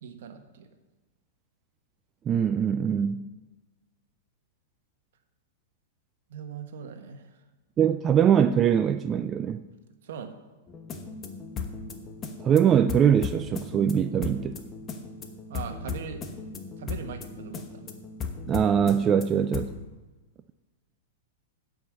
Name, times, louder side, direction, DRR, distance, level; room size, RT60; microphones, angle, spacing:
voice 1, 0.0-0.7 6.3-7.3 10.0-10.4 15.5-16.2 16.8-17.8, right 6 dB, 70° right, 7 dB, 1.3 m, -40 dB
voice 2, 2.3-3.3 7.8-9.7 12.4-14.6 18.5-19.7, right 8 dB, 20° right, 10 dB, 0.3 m, -22 dB
sound 1, 10.7-19.9, left 5 dB, 25° left, 1.0 m, -37 dB
10.0 x 5.3 x 7.4 m, 1.2 s
hypercardioid pair, 145°, 0 cm